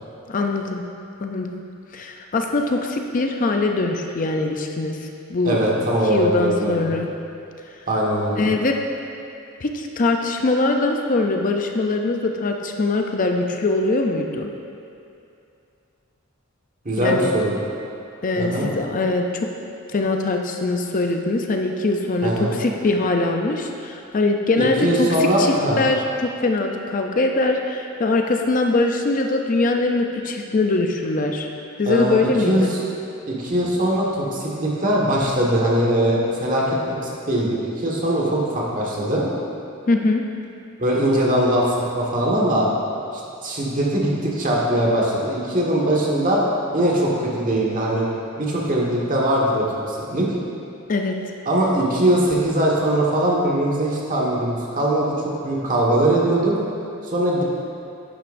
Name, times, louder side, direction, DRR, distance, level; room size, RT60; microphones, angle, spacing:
voice 1, 0.3-0.8 1.2-1.5 1.9-5.6 6.1-7.1 8.4-8.8 9.6-14.5 17.0-17.3 18.2-19.5 19.9-25.1 25.4-31.5 31.8-32.7 39.9-40.2 50.9-51.2, left 2 dB, 40° left, 3 dB, 0.5 m, -22 dB
voice 2, 5.4-6.8 7.9-8.4 16.8-17.6 18.4-18.7 22.2-22.5 24.6-25.8 31.9-32.2 32.4-32.8 33.3-39.3 40.8-42.7 43.1-46.4 46.7-48.0 48.4-50.3 51.4-56.5 57.0-57.4, right 1 dB, 40° right, -4 dB, 1.5 m, -21 dB
10.5 x 8.9 x 2.6 m, 2.6 s
head